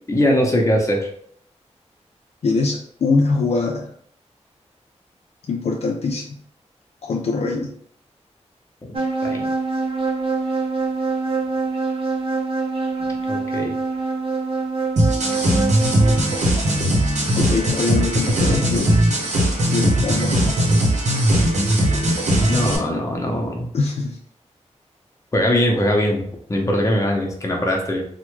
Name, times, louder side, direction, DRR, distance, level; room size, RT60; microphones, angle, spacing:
voice 1, 0.1-1.1 8.8-8.9 9.2-9.5 13.1-13.7 22.5-23.7 25.3-28.0, left 1 dB, 25° left, 0 dB, 0.7 m, -21 dB
voice 2, 2.4-3.9 5.5-6.4 7.0-7.8 17.4-19.2 19.7-20.5 23.7-24.2, left 3 dB, 65° left, 0 dB, 0.4 m, -23 dB
sound 1, 8.9-16.4, right 3 dB, 50° right, 0.6 m, -25 dB
sound 2, 15.0-22.8, right 1 dB, 85° right, 0.8 m, -19 dB
3.4 x 2.1 x 3.1 m, 0.62 s
wide cardioid pair, 125°, 12 cm